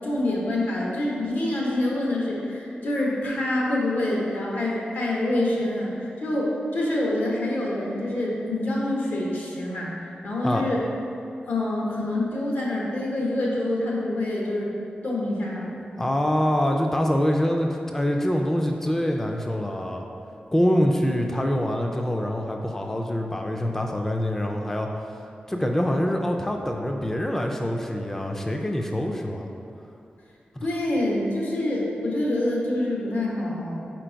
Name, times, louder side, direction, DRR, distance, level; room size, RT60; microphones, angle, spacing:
voice 1, 0.0-9.9 10.2-10.8 11.5-14.7 15.0-15.7 30.6-33.8, left 1 dB, 85° left, -4 dB, 1.2 m, -26 dB
voice 2, 16.0-20.0 20.5-24.9 25.5-29.5 30.5-30.6, equal, 10° left, 2 dB, 0.3 m, -25 dB
4.5 x 4.2 x 5.1 m, 2.7 s
wide cardioid pair, 140°, 3 cm